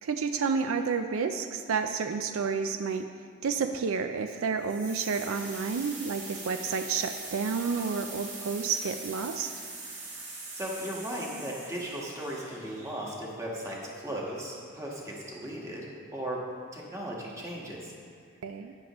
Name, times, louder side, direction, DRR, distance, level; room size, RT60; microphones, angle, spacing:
voice 1, 0.0-9.5 18.4-18.7, right 5 dB, 75° right, 7 dB, 0.4 m, -30 dB
sound 1, 4.6-13.5, right 3 dB, 35° right, 2.0 m, -42 dB
voice 2, 10.5-16.4 16.7-17.9, equal, 15° right, -3 dB, 1.4 m, -37 dB
12.5 x 9.4 x 3.0 m, 2.2 s
head